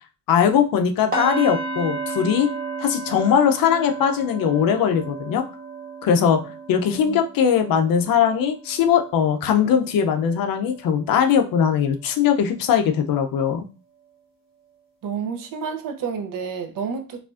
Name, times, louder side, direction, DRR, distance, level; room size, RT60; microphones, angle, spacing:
voice 1, 0.3-2.5 2.8-5.4 6.0-6.4 6.7-13.6, left 8 dB, 65° left, 0.6 m, -20 dB
sound 1, 1.1-11.0 11.4-11.7 12.1-12.2, right 3 dB, 25° right, 1.4 m, -33 dB
voice 2, 15.0-17.2, right 6 dB, 60° right, 0.7 m, -29 dB
4.8 x 2.5 x 2.4 m
cardioid pair, 165°, 38 cm